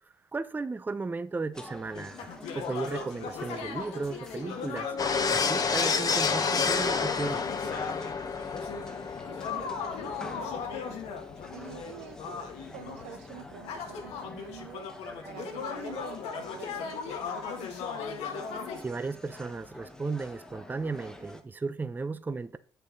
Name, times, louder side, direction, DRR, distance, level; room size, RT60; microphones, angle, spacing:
voice 1, 0.3-2.3 2.6-4.9 5.3-7.4 18.8-22.6, right 3 dB, 15° right, 0.5 m, -35 dB
sound 1, 1.5-21.4, left 1 dB, 5° left, 1.2 m, -47 dB
sound 2, 1.9-8.2 8.5-18.8, left 6 dB, 75° left, 1.6 m, -37 dB
sound 3, 5.0-14.0 14.3-14.5, left 5 dB, 35° left, 1.0 m, -31 dB
voice 2, 9.3-11.0 11.5-14.9 15.2-17.8, right 9 dB, 90° right, 1.0 m, -47 dB
7.9 x 6.7 x 3.8 m
supercardioid pair, 80°, 11 cm